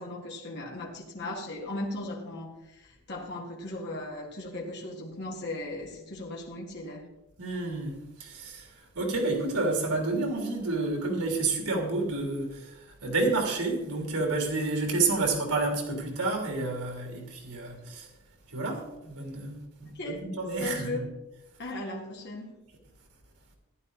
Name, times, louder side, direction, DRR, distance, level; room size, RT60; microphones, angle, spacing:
voice 1, 0.0-7.1 19.9-20.2 20.6-21.1 21.6-22.6, left 2 dB, 50° left, 2.2 m, -37 dB
voice 2, 7.4-18.1 18.5-21.0, right 3 dB, 85° right, 3.1 m, -30 dB
15.0 x 10.5 x 4.1 m
head